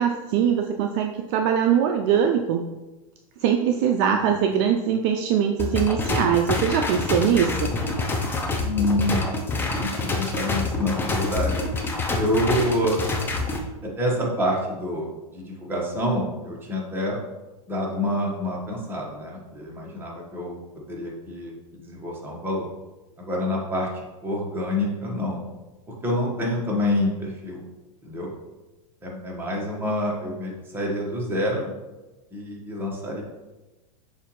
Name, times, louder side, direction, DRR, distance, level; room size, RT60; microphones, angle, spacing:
voice 1, 0.0-2.6 3.4-7.7, right 8 dB, 45° right, 4 dB, 0.4 m, -22 dB
sound 1, 5.6-13.6, left 3 dB, 10° left, 0.5 m, -26 dB
voice 2, 8.6-9.3 9.6-11.6 12.2-13.1 13.8-15.1 15.3-17.2 17.7-20.6 20.9-22.7 23.2-23.9 24.2-25.4 26.0-27.6 28.0-28.3 29.0-31.7 32.3-33.2, left 1 dB, 10° right, -3 dB, 1.2 m, -27 dB
6.6 x 2.5 x 3.0 m, 1.1 s
hypercardioid pair, 125°, 18 cm